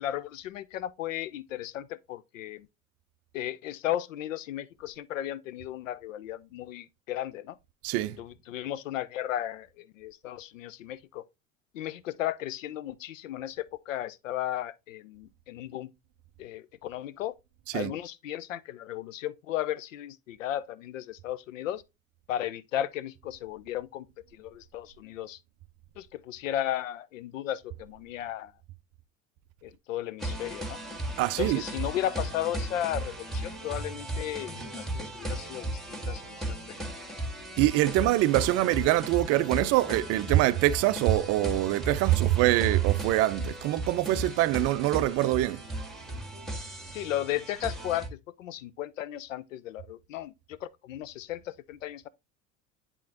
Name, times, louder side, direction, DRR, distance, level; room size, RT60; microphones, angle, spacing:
voice 1, 0.0-2.7 3.3-7.6 8.2-11.2 11.7-15.9 16.4-17.4 17.7-21.8 22.3-24.1 24.3-25.4 26.0-28.5 29.6-30.8 31.4-36.6 46.9-52.1, left 12 dB, 70° left, 0.6 m, -35 dB
voice 2, 7.8-8.2 17.7-17.9 31.2-31.6 37.6-45.6, right 16 dB, 40° right, 0.5 m, -24 dB
sound 1, 30.2-48.1, right 1 dB, ahead, 1.7 m, -36 dB
10.5 x 3.5 x 2.8 m
figure-of-eight pair, 75°, 40 cm